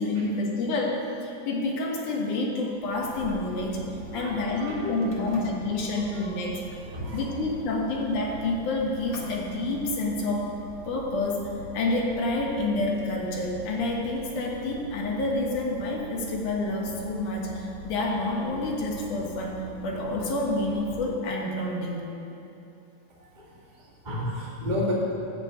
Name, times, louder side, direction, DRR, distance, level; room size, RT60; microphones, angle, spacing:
voice 1, 0.0-3.8 4.1-6.6 7.1-10.5 10.9-22.0, left 2 dB, 75° left, -1 dB, 2.9 m, -28 dB
sound 1, 2.7-21.0, right 1 dB, 35° left, 1.9 m, -43 dB
voice 2, 4.1-5.3 6.2-6.3 6.9-7.2 23.2-24.9, left 1 dB, 20° right, -6 dB, 1.5 m, -33 dB
12.5 x 5.7 x 8.5 m, 2.9 s
omnidirectional pair, 3.7 m